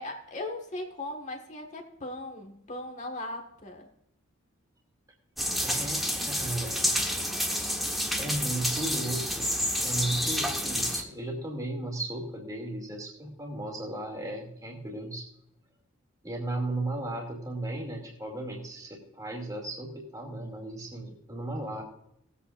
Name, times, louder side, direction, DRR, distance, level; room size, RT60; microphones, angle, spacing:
voice 1, 0.0-3.9, left 1 dB, 35° left, 2 dB, 1.7 m, -38 dB
sound 1, 5.4-11.0, equal, ahead, 1.3 m, -29 dB
voice 2, 5.6-6.8 7.8-9.6 9.8-15.3 16.2-21.8, right 1 dB, 20° right, -1 dB, 2.5 m, -35 dB
18.5 x 8.4 x 2.5 m, 0.77 s
head